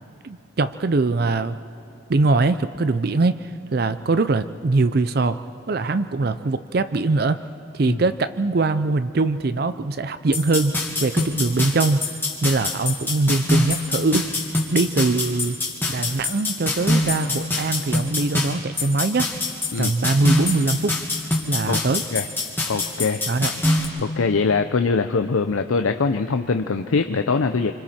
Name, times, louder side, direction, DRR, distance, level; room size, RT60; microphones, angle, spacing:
voice 1, 0.2-1.6 2.1-5.4 5.7-7.4 7.7-12.1 12.4-14.3 14.7-15.6 15.9-19.3 19.8-20.9 21.5-22.0 23.3-23.5, right 3 dB, 50° right, 12 dB, 0.5 m, -22 dB
sound 1, 10.3-23.8, left 2 dB, 10° left, 1.9 m, -24 dB
voice 2, 22.7-23.2 24.0-27.7, left 4 dB, 85° left, 7 dB, 0.6 m, -22 dB
27.0 x 25.5 x 4.4 m, 2.7 s
head